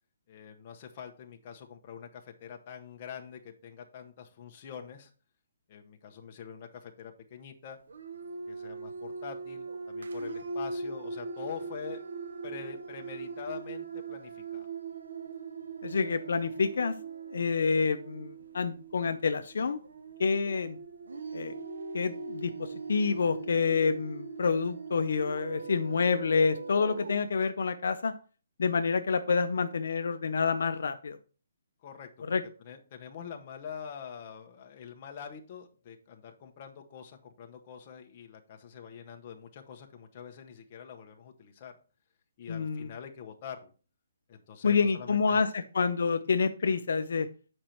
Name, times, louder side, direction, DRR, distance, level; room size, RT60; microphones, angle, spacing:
voice 1, 0.3-5.1 5.7-7.8 8.5-12.0 12.4-14.7 31.8-32.1 32.6-41.7 42.4-43.7 44.3-45.5, left 7 dB, 25° left, 3 dB, 0.8 m, -45 dB
sound 1, 7.9-27.2, right 4 dB, 80° right, 1.0 m, -40 dB
voice 2, 15.8-16.9 17.3-19.8 20.2-20.8 21.3-21.5 21.9-28.1 28.6-31.2 32.3-32.4 42.5-42.9 44.6-47.3, left 5 dB, 60° left, 9 dB, 0.6 m, -28 dB
7.9 x 5.2 x 4.4 m, 0.38 s
hypercardioid pair, 175°, 0 cm